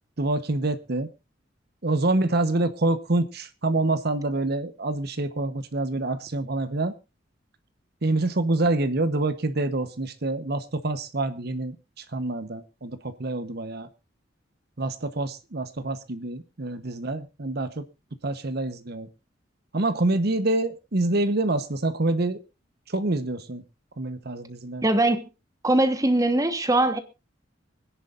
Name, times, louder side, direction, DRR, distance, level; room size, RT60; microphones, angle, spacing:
voice 1, 0.2-1.1 1.8-6.9 8.0-13.9 14.8-17.8 18.2-19.1 19.7-22.4 22.9-23.6 24.0-24.8, right 2 dB, 55° right, 1.0 m, -26 dB
voice 2, 24.8-25.3 25.6-27.0, right 2 dB, 20° right, 1.2 m, -21 dB
24.5 x 10.5 x 2.5 m
head